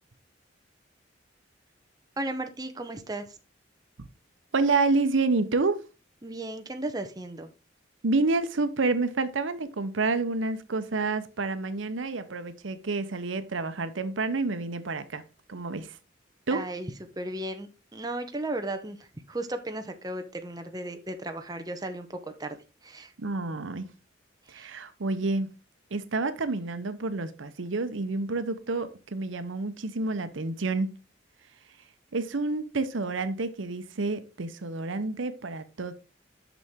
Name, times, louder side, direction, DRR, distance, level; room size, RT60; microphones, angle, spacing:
voice 1, 2.2-3.4 6.2-7.5 16.5-23.1 24.5-24.7, right 1 dB, 20° right, 0.8 m, -35 dB
voice 2, 4.5-5.8 8.0-15.2 15.5-16.0 16.5-16.6 23.2-23.9 24.5-25.5 25.9-30.9 32.1-35.9, right 3 dB, 85° right, 0.8 m, -29 dB
6.9 x 6.1 x 3.6 m
head